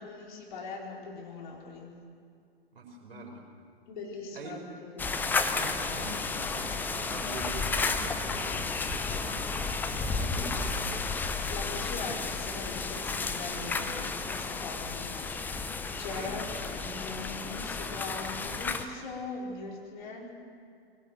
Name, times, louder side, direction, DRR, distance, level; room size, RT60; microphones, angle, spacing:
voice 1, 0.0-1.9 3.9-5.1 10.4-10.7 11.5-15.5 16.0-20.3, left 3 dB, 50° left, -2 dB, 4.6 m, -41 dB
voice 2, 2.7-3.4 4.3-4.6 5.5-8.7 9.1-9.7 10.0-11.4 11.9-12.1 16.1-16.4, right 3 dB, 60° right, 0 dB, 5.1 m, -44 dB
sound 1, 5.0-18.8, left 4 dB, 5° left, 0.6 m, -32 dB
21.5 x 17.5 x 8.0 m, 2.3 s
figure-of-eight pair, 110°, 31 cm